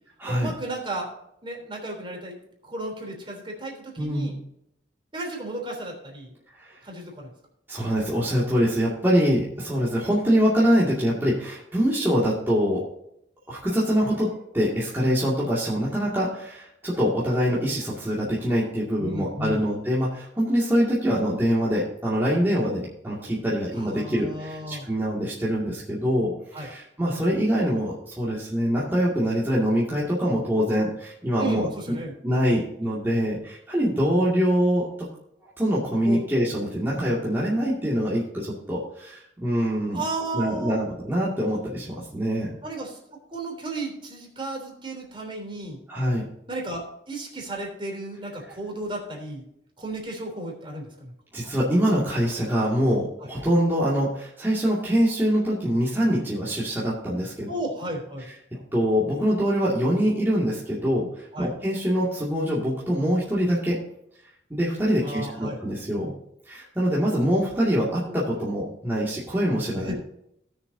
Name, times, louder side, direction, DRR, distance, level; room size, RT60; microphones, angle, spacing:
voice 1, 0.3-1.1 1.4-2.4 2.7-4.4 5.1-6.3 6.8-7.3 15.0-15.2 19.0-19.6 23.8-24.9 26.5-26.7 31.4-32.1 36.0-36.2 39.9-40.8 42.6-43.0 43.3-45.8 46.5-49.4 49.8-51.1 57.5-58.3 61.3-61.5 65.0-65.6 69.8-70.0, right 1 dB, 30° right, 0 dB, 3.4 m, -34 dB
voice 2, 4.0-4.3 6.6-6.7 7.7-12.8 13.5-31.7 32.2-34.9 35.6-40.0 40.3-42.5 45.9-46.2 51.3-57.5 58.5-63.8 64.5-66.1 66.5-70.0, equal, 15° right, -8 dB, 2.2 m, -24 dB
18.5 x 6.8 x 2.7 m, 0.76 s
head